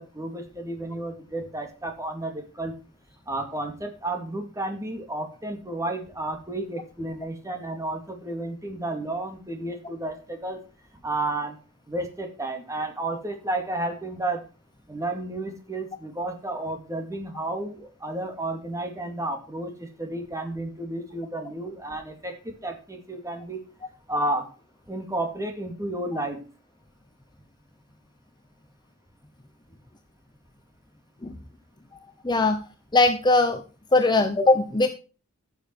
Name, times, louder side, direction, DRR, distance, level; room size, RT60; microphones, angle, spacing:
voice 1, 0.0-2.7 3.3-10.6 11.0-11.6 11.9-14.4 14.9-23.6 24.1-24.5 24.9-26.5, right 2 dB, 15° right, 4 dB, 2.3 m, -32 dB
voice 2, 32.2-32.6 32.9-33.6 33.9-34.9, left 2 dB, 20° left, 7 dB, 0.8 m, -20 dB
14.5 x 7.0 x 4.6 m, 0.34 s
head